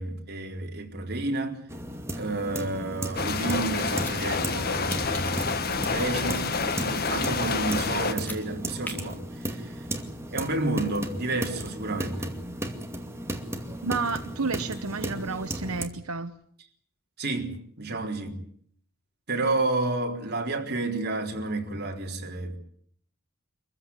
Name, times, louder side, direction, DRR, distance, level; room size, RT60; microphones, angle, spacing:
voice 1, 0.0-1.6 2.1-5.5 5.8-9.8 10.3-12.3 17.2-18.4 19.3-22.6, right 2 dB, 50° right, 4.0 m, -31 dB
sound 1, 1.7-15.9, right 1 dB, 10° right, 2.3 m, -35 dB
sound 2, 3.2-8.1, left 4 dB, 45° left, 1.8 m, -28 dB
sound 3, 3.7-4.2 4.9-5.3 8.0-8.4 8.8-8.9, left 1 dB, 10° left, 3.6 m, -40 dB
voice 2, 13.8-16.3, right 4 dB, 85° right, 1.1 m, -31 dB
25.5 x 15.0 x 9.7 m
head